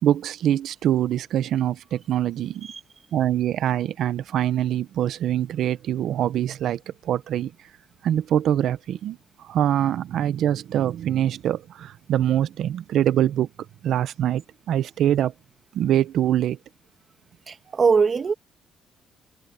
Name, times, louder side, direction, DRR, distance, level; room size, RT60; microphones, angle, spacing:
voice 1, 0.0-2.7 3.1-6.8 7.0-7.5 8.0-9.2 9.5-13.5 13.8-14.4 14.7-15.3 15.7-16.6, right 11 dB, 75° right, 0.9 m, -23 dB
voice 2, 17.5-18.3, right 5 dB, 40° right, 2.0 m, -21 dB
cardioid pair, 90°, 0 cm